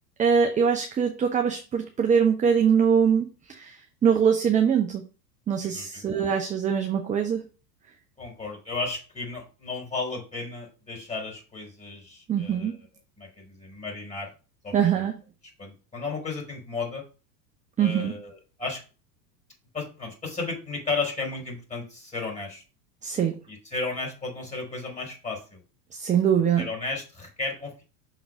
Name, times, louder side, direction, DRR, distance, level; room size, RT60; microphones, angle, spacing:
voice 1, 0.2-5.0 5.5-7.4 12.3-12.7 14.7-15.1 17.8-18.1 23.0-23.4 25.9-26.6, right 7 dB, 15° right, 4 dB, 0.7 m, -23 dB
voice 2, 5.6-6.1 8.2-12.8 13.2-14.3 14.6-15.0 15.6-17.0 17.8-18.8 19.7-22.6 23.5-25.6 26.6-27.8, left 3 dB, 15° left, 0 dB, 3.8 m, -34 dB
6.1 x 4.0 x 5.2 m, 0.34 s
hypercardioid pair, 90°, 49 cm